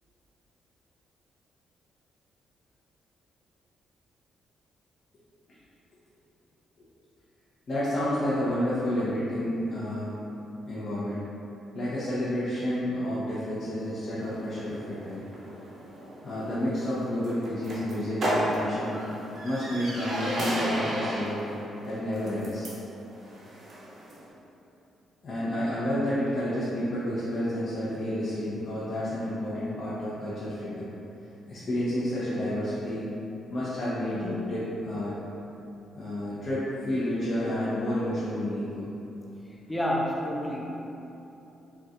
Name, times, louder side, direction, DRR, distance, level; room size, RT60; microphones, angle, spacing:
voice 1, 7.7-10.2 10.6-11.3 11.7-15.2 16.2-19.0 19.4-21.4 21.8-22.7 25.2-30.9 31.5-33.1 33.5-35.2 35.9-38.9, left 1 dB, 50° left, -10 dB, 0.7 m, -30 dB
sound 1, 14.2-24.3, equal, 55° right, 0.7 m, -34 dB
voice 2, 39.7-40.7, equal, 5° left, -2 dB, 0.4 m, -28 dB
4.1 x 2.3 x 2.5 m, 3.0 s
cardioid pair, 75°, 0 cm